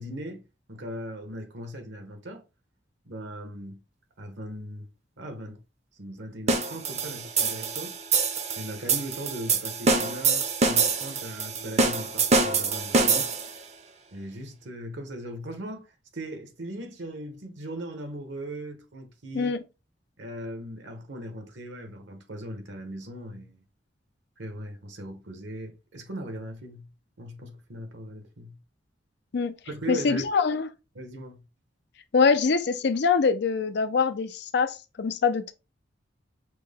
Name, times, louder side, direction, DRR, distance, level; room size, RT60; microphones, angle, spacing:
voice 1, 0.0-2.4 3.0-3.8 4.2-4.9 5.2-5.6 5.9-7.9 8.6-13.3 14.1-19.5 20.2-23.6 24.4-26.9 27.2-28.6 29.7-30.2 30.9-31.4, right 1 dB, 70° right, 1.2 m, -39 dB
sound 1, 6.5-13.6, right 4 dB, 35° right, 0.7 m, -25 dB
voice 2, 29.9-30.7 32.1-35.5, left 5 dB, 65° left, 0.5 m, -24 dB
6.0 x 2.2 x 3.5 m
head